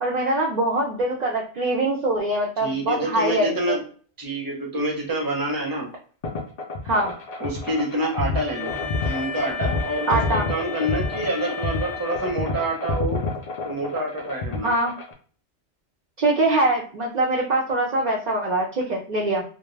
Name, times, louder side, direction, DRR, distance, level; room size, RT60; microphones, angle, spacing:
voice 1, 0.0-3.8 6.8-7.1 10.1-10.5 14.6-14.9 16.2-19.4, right 2 dB, 60° right, -2 dB, 0.5 m, -23 dB
voice 2, 2.6-3.8 4.2-5.9 7.4-8.7 9.0-13.2 13.6-14.7, right 1 dB, 20° right, -1 dB, 0.7 m, -27 dB
sound 1, 6.2-15.1, left 3 dB, 70° left, 0.4 m, -29 dB
Wind instrument woodwind instrument, 8.5-12.7, left 6 dB, 90° left, 1.0 m, -35 dB
2.2 x 2.2 x 3.1 m, 0.43 s
omnidirectional pair, 1.2 m